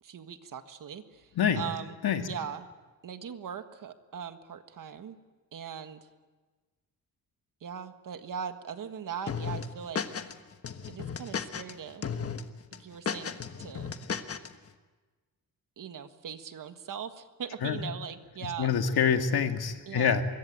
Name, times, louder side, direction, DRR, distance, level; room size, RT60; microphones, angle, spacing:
voice 1, 0.0-2.7 3.0-5.2 5.5-6.1 7.6-10.1 10.9-12.1 12.7-13.9 15.8-18.7 19.8-20.2, right 7 dB, 60° right, 9 dB, 1.6 m, -40 dB
sound 1, 9.3-10.3 10.6-11.7 12.0-12.4 12.7-14.5, left 6 dB, 40° left, 1.3 m, -34 dB
voice 2, 18.4-20.2, left 7 dB, 80° left, 5 dB, 2.3 m, -26 dB
25.0 x 22.0 x 8.9 m, 1.3 s
wide cardioid pair, 175°, 37 cm